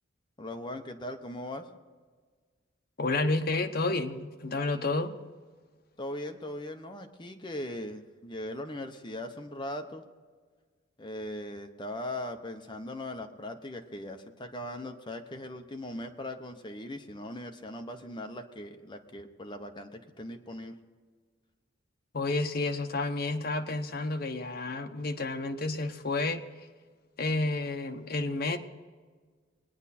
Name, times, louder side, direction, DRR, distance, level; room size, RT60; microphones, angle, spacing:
voice 1, 0.4-1.7 6.0-10.0 11.0-20.7, left 1 dB, 25° left, 5 dB, 1.0 m, -39 dB
voice 2, 3.0-5.1 22.1-26.4 27.2-28.6, left 2 dB, 55° left, 5 dB, 1.0 m, -30 dB
22.0 x 9.6 x 4.3 m, 1.5 s
head